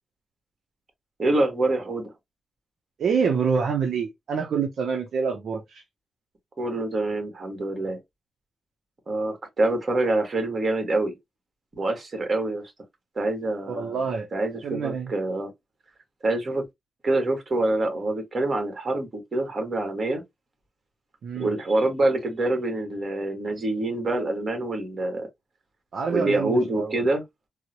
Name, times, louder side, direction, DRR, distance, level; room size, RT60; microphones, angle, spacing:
voice 1, 1.2-2.1 6.6-8.0 9.1-11.1 11.8-12.7 13.1-14.0 14.3-15.5 16.2-16.6 17.0-20.2 21.4-25.3 26.1-27.2, right 2 dB, 45° right, 1.4 m, -26 dB
voice 2, 3.0-5.8 13.7-14.3 14.6-15.1 21.2-21.5 25.9-27.1, right 6 dB, 80° right, 0.6 m, -26 dB
3.7 x 2.0 x 2.8 m
cardioid pair, 80°, 0 cm